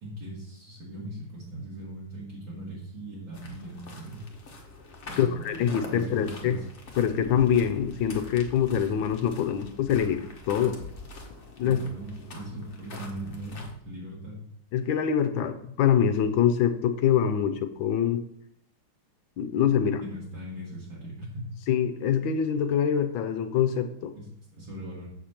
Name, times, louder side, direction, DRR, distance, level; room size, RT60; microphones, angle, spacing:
voice 1, 0.0-4.2 5.0-6.7 11.6-14.4 20.0-21.5 24.2-25.1, right 1 dB, 65° right, -7 dB, 2.7 m, -40 dB
sound 1, 3.3-13.7, left 3 dB, 40° left, 0.9 m, -45 dB
voice 2, 5.2-6.6 7.0-10.8 11.6-11.8 14.7-18.2 19.4-20.0 21.7-24.1, left 8 dB, 70° left, 10 dB, 1.4 m, -25 dB
7.5 x 6.6 x 4.4 m, 0.70 s
omnidirectional pair, 2.3 m